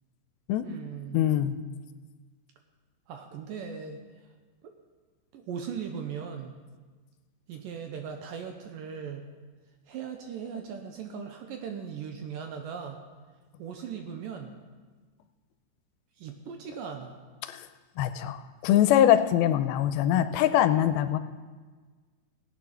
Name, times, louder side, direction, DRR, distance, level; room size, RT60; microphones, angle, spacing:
voice 1, 0.6-1.6 3.1-4.0 4.6-4.7 5.3-6.5 7.5-9.3 9.9-13.0 13.6-14.5 16.2-17.2, right 7 dB, 75° right, 4 dB, 2.3 m, -38 dB
voice 2, 1.1-1.6 17.4-17.6 18.0-21.2, left 11 dB, 90° left, 10 dB, 2.5 m, -23 dB
17.0 x 9.0 x 5.7 m, 1.4 s
omnidirectional pair, 4.3 m